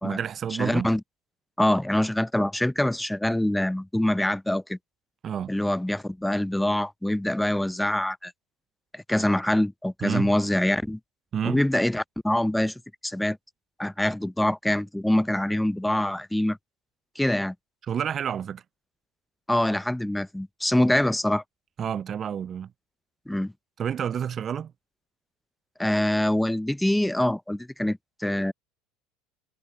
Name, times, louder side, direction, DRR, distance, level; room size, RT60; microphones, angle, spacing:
voice 1, 0.0-0.9 5.2-5.5 10.0-10.3 11.3-11.6 17.9-18.6 21.8-22.7 23.8-24.7, right 8 dB, 35° right, 0.6 m, -29 dB
voice 2, 0.6-1.0 1.6-4.8 5.5-8.3 8.9-11.0 11.4-12.7 13.0-13.4 13.8-16.6 17.2-17.5 19.5-21.4 23.3-23.5 25.8-28.5, left 1 dB, 5° left, 0.8 m, -25 dB
figure-of-eight pair, 70°, 0 cm